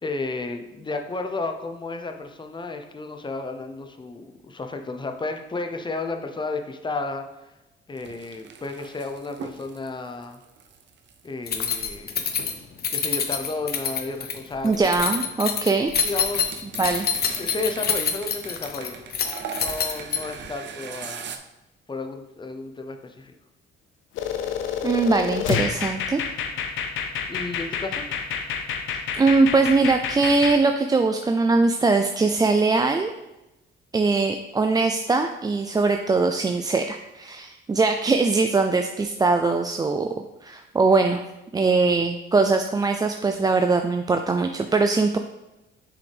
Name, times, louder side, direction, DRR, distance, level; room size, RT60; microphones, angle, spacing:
voice 1, 0.0-7.5 7.9-10.4 11.2-12.2 12.9-15.2 16.0-16.8 17.1-19.0 19.5-21.4 21.9-23.3 27.3-28.1, left 3 dB, 25° left, 5 dB, 0.8 m, -33 dB
sound 1, 8.0-12.5 13.3-15.5 15.9-21.4, right 7 dB, 65° right, 0.7 m, -40 dB
Keys jangling, 11.5-20.5, left 7 dB, 55° left, 0.8 m, -26 dB
voice 2, 14.6-15.9 16.8-17.1 24.8-26.2 29.2-33.1 33.9-40.1 40.4-41.2 41.5-45.2, right 3 dB, 20° right, 5 dB, 0.4 m, -21 dB
sound 2, 24.2-30.6, left 7 dB, 85° left, 0.7 m, -28 dB
6.8 x 4.9 x 3.4 m, 0.97 s
cardioid pair, 90°, 20 cm